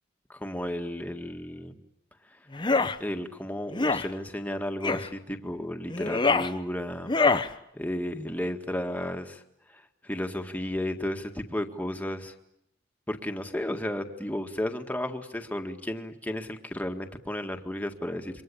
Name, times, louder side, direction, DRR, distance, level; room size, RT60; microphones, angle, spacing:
voice 1, 0.3-1.8 2.2-2.5 3.0-9.4 9.7-12.3 13.1-18.4, left 1 dB, 10° left, 5 dB, 1.9 m, -33 dB
sound 1, 2.5-3.0 3.7-4.1 4.8-5.1 5.9-6.5 7.1-7.5, left 3 dB, 25° left, 1.0 m, -24 dB
28.0 x 24.5 x 8.6 m, 0.76 s
head